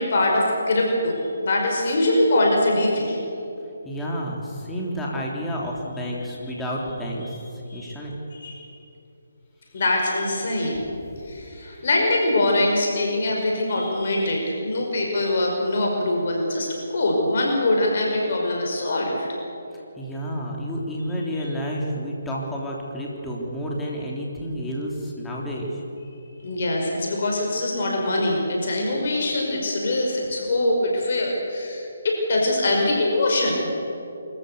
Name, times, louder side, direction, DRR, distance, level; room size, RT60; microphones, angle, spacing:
voice 1, 0.0-3.2 7.7-7.9 8.4-8.7 9.7-10.8 11.3-19.3 26.4-33.7, left 1 dB, 55° left, 0 dB, 5.5 m, -23 dB
voice 2, 3.8-8.2 11.1-11.3 11.7-11.9 19.7-25.8, equal, 10° left, -3 dB, 3.5 m, -30 dB
24.5 x 14.5 x 8.3 m, 2.9 s
figure-of-eight pair, 150°, 0 cm